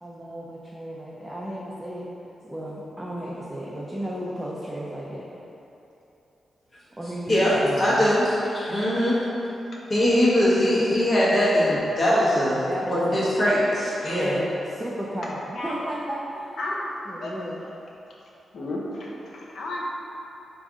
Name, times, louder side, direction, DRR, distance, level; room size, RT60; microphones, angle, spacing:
voice 1, 0.0-2.1 2.4-5.2 7.0-8.1 12.6-13.3 14.1-16.5 17.1-17.7, equal, 10° right, -6 dB, 0.4 m, -33 dB
voice 2, 7.3-9.2 9.9-14.3, equal, 35° left, -8 dB, 1.1 m, -21 dB
voice 3, 16.6-17.7 18.5-20.0, left 1 dB, 70° left, -3 dB, 0.6 m, -33 dB
4.7 x 2.6 x 3.6 m, 3.0 s
wide cardioid pair, 120°, 0 cm